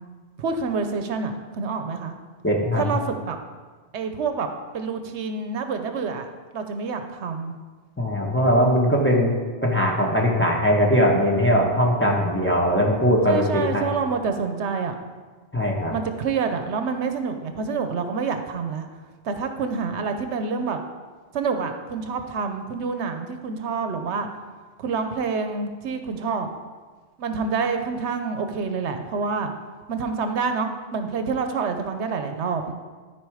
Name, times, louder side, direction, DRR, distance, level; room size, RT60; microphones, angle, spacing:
voice 1, 0.4-2.1 2.8-3.4 3.9-4.5 4.7-6.3 6.5-7.5 13.3-14.9 15.9-18.9 19.2-20.8 21.3-24.3 24.8-26.5 27.2-29.5 29.9-32.7, right 5 dB, 80° right, 6 dB, 1.0 m, -27 dB
voice 2, 2.4-3.0 8.0-9.3 9.6-13.8 15.5-15.9, equal, 10° left, -3 dB, 1.4 m, -20 dB
12.5 x 4.8 x 4.9 m, 1.4 s
omnidirectional pair, 1.2 m